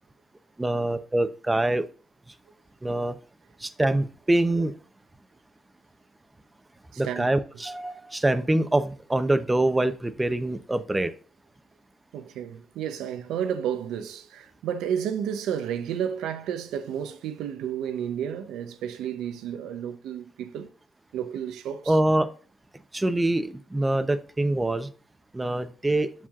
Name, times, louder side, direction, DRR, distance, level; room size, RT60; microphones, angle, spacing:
voice 1, 0.6-1.8 2.8-3.1 3.6-4.7 7.0-11.1 21.9-22.3 22.9-24.9 25.3-26.1, right 1 dB, 15° right, 0.7 m, -24 dB
voice 2, 6.9-7.3 12.1-20.7 21.1-22.0, right 9 dB, 85° right, 0.8 m, -31 dB
7.5 x 5.6 x 2.4 m
cardioid pair, 90°, 0 cm